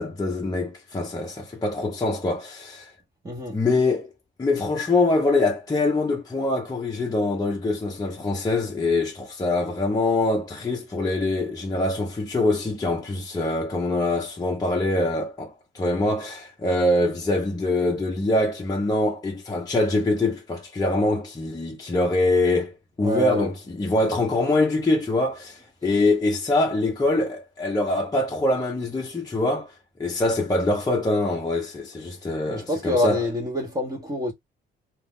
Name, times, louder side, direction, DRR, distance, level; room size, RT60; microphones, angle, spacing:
voice 1, 0.0-2.9 3.5-4.1 4.4-29.7 30.0-33.2, left 2 dB, 20° left, 0.7 m, -24 dB
voice 2, 3.2-3.6 23.0-23.5 32.5-34.3, left 1 dB, 20° right, 1.0 m, -26 dB
2.5 x 2.4 x 3.5 m
cardioid pair, 90°, 20 cm